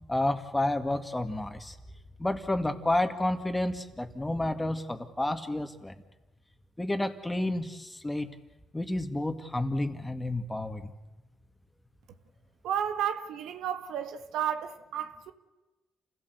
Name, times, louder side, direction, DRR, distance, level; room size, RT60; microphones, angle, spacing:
voice 1, 0.1-1.8 2.2-5.9 6.8-8.3 8.7-10.9, left 1 dB, 10° left, 2.1 m, -30 dB
voice 2, 12.6-15.3, right 9 dB, 85° right, 1.5 m, -32 dB
28.5 x 16.5 x 8.1 m
cardioid pair, 90°, 0 cm